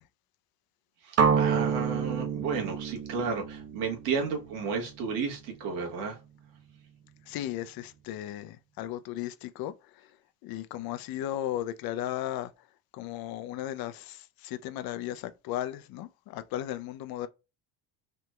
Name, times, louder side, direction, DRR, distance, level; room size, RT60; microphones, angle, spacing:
voice 1, 1.0-6.2, right 5 dB, 85° right, 1.4 m, -33 dB
sound 1, 1.2-5.1, right 6 dB, 35° right, 0.6 m, -28 dB
voice 2, 7.2-10.2 10.4-12.7 12.9-17.3, left 12 dB, 50° left, 0.5 m, -36 dB
3.4 x 2.9 x 2.2 m
supercardioid pair, 95°, 47 cm